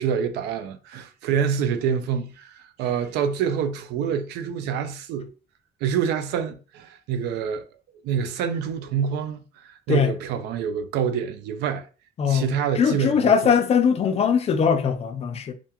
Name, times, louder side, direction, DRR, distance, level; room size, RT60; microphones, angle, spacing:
voice 1, 0.0-5.3 5.8-7.6 8.0-11.8 12.3-13.5, right 7 dB, 85° right, 0.4 m, -26 dB
voice 2, 12.2-15.5, left 7 dB, 40° left, 0.4 m, -21 dB
2.4 x 2.3 x 2.8 m
cardioid pair, 110°, 17 cm